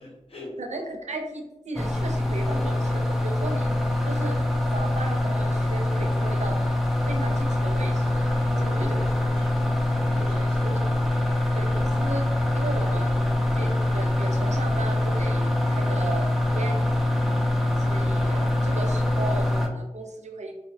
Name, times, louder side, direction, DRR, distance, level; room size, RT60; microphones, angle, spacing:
voice 1, 0.0-0.6 2.5-2.6 8.3-10.7, left 1 dB, 50° left, -3 dB, 0.7 m, -41 dB
voice 2, 0.6-3.8 4.0-4.4 4.7-6.6 6.9-8.3 8.6-9.0 10.3-10.8 11.5-12.3 12.5-17.1 17.8-20.6, right 2 dB, 70° right, 4 dB, 0.4 m, -36 dB
sound 1, 1.8-19.7, left 1 dB, ahead, 0.4 m, -24 dB
2.7 x 2.1 x 2.6 m, 1.0 s
wide cardioid pair, 50°, 12 cm